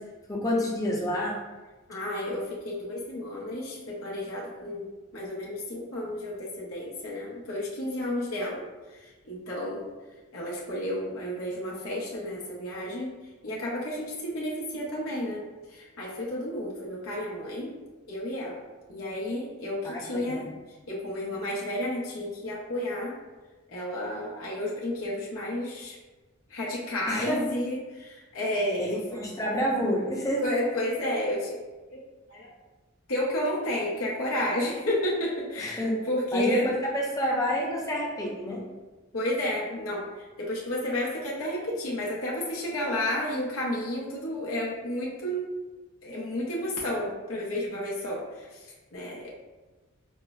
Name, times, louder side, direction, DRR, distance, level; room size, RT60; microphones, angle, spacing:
voice 1, 0.3-1.3 19.8-20.4 27.1-27.4 28.8-28.9 29.1-30.4 35.6-35.9 36.3-36.6 36.9-38.6, equal, 15° left, -3 dB, 0.6 m, -28 dB
voice 2, 1.9-9.9 10.3-13.1 13.4-17.7 18.1-18.6 18.9-20.5 20.9-23.1 23.7-26.0 26.5-29.0 30.4-31.6 31.9-32.0 32.3-32.5 33.1-36.7 39.1-45.5 46.0-49.3, left 1 dB, 80° left, -4 dB, 0.7 m, -31 dB
5.2 x 2.0 x 2.3 m, 1.2 s
head